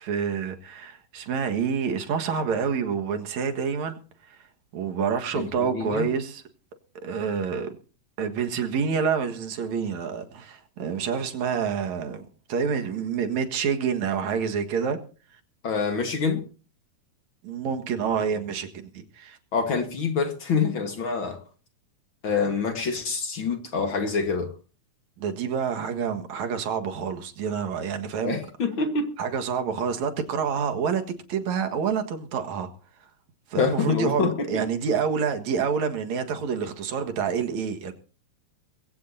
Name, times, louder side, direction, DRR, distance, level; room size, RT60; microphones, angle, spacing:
voice 1, 0.0-4.0 4.3-4.5 4.7-6.4 7.0-7.7 8.2-15.0 15.3-15.4 17.4-19.4 25.2-28.4 29.2-31.0 31.3-32.7 33.5-37.9, right 6 dB, 70° right, 2.9 m, -28 dB
voice 2, 5.3-6.1 15.6-16.4 19.5-21.4 22.2-24.5 28.2-29.1 33.6-34.6, left 5 dB, 50° left, 2.0 m, -26 dB
21.5 x 16.5 x 2.7 m
omnidirectional pair, 3.4 m